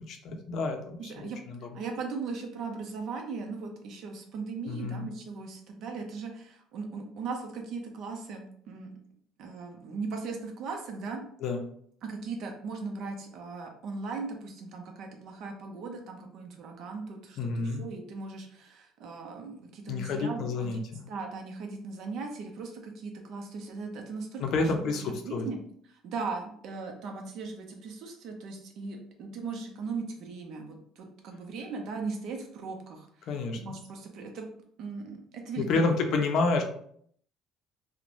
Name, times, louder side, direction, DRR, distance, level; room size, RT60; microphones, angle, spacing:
voice 1, 0.1-1.7 4.7-5.1 11.4-11.6 17.4-17.8 19.9-21.0 24.4-25.5 33.3-33.6 35.6-36.6, left 3 dB, 60° left, 4 dB, 0.5 m, -29 dB
voice 2, 1.0-1.4 1.7-8.9 9.4-11.2 12.0-20.7 21.1-25.6 25.9-33.3 33.6-34.5 34.8-36.2, right 4 dB, 60° right, 3 dB, 0.6 m, -38 dB
3.0 x 2.1 x 2.5 m, 0.64 s
cardioid pair, 120°, 0 cm